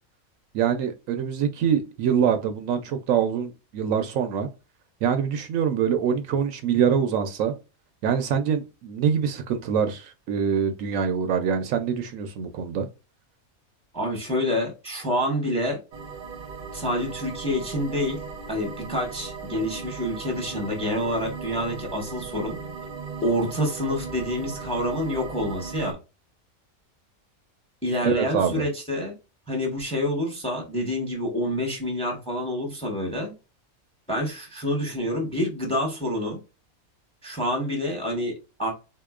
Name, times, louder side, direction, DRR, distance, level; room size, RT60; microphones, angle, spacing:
voice 1, 0.5-4.5 5.0-7.5 8.0-12.9 28.0-28.6, right 7 dB, 75° right, 0.9 m, -24 dB
voice 2, 13.9-15.8 16.7-18.2 18.5-22.6 23.2-26.0 27.8-29.1 29.5-33.3 34.1-36.4 37.2-38.7, left 1 dB, 5° left, 0.8 m, -27 dB
sound 1, 15.9-25.9, right 5 dB, 45° right, 0.7 m, -37 dB
4.0 x 2.8 x 2.3 m
omnidirectional pair, 1.5 m